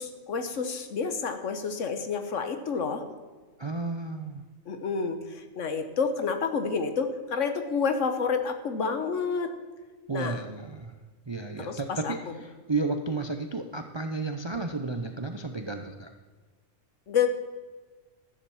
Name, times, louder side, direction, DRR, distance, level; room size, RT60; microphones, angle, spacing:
voice 1, 0.0-3.0 4.7-9.5 10.1-10.4 11.6-12.1 17.1-17.3, left 5 dB, 65° left, 8 dB, 1.3 m, -29 dB
voice 2, 3.6-4.4 10.1-10.9 11.3-16.1, right 3 dB, 35° right, 6 dB, 0.4 m, -32 dB
13.0 x 7.3 x 7.0 m, 1.4 s
omnidirectional pair, 1.4 m